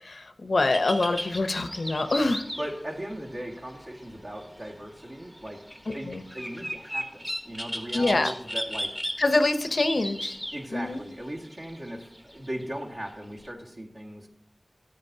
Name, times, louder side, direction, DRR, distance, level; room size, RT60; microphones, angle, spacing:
voice 1, 0.0-2.4 5.9-6.2 7.9-8.3 9.2-10.4 10.7-11.0, left 2 dB, 65° left, 9 dB, 0.6 m, -25 dB
sound 1, 0.6-13.5, equal, 5° right, 1.0 m, -37 dB
voice 2, 2.6-5.7 5.9-9.0 10.5-14.3, equal, 45° right, -2 dB, 1.8 m, -38 dB
14.0 x 9.1 x 2.7 m, 0.76 s
wide cardioid pair, 75°, 0 cm